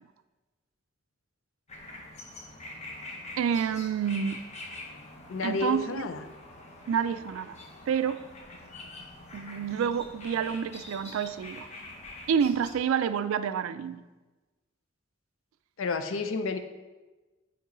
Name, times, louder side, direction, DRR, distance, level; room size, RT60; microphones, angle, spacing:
sound 1, 1.7-12.8, left 2 dB, 35° left, 0.9 m, -45 dB
voice 1, 3.4-4.4 5.4-6.0 6.9-7.6 7.9-8.2 9.3-11.7 12.3-14.0, right 7 dB, 90° right, 13 dB, 0.3 m, -28 dB
voice 2, 5.3-6.2 15.8-16.6, left 4 dB, 80° left, 9 dB, 0.5 m, -30 dB
8.5 x 3.0 x 3.8 m, 1.2 s
head